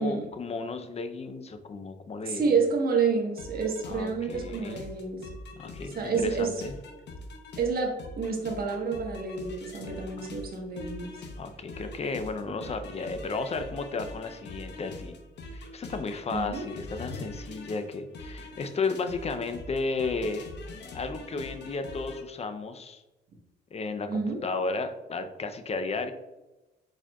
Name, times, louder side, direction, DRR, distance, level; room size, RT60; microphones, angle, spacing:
voice 1, 0.0-2.6 3.9-4.8 5.6-6.7 10.2-10.3 11.4-15.1 15.5-20.5 20.9-23.0 23.7-26.1, left 3 dB, 30° left, 8 dB, 0.5 m, -33 dB
voice 2, 2.2-5.2 5.9-6.5 7.6-11.2 12.6-12.7 16.3-16.6 24.1-24.4, right 5 dB, 50° right, 0 dB, 1.2 m, -29 dB
sound 1, 3.4-22.2, left 2 dB, 60° left, 0.8 m, -43 dB
4.7 x 4.3 x 2.3 m, 1.0 s
cardioid pair, 90°, 20 cm